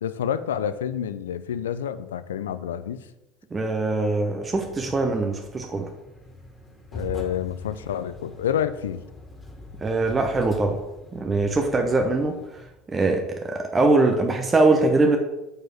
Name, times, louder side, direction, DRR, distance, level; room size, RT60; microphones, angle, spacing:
voice 1, 0.0-3.1 6.9-9.0, left 9 dB, 80° left, 13 dB, 0.4 m, -28 dB
voice 2, 3.5-5.9 9.8-10.8 11.1-12.6 12.9-15.2, right 2 dB, 25° right, 3 dB, 0.8 m, -22 dB
sound 1, 4.5-12.7, left 1 dB, 20° left, 2.0 m, -42 dB
6.5 x 4.6 x 4.6 m, 0.97 s
hypercardioid pair, 70°, 0 cm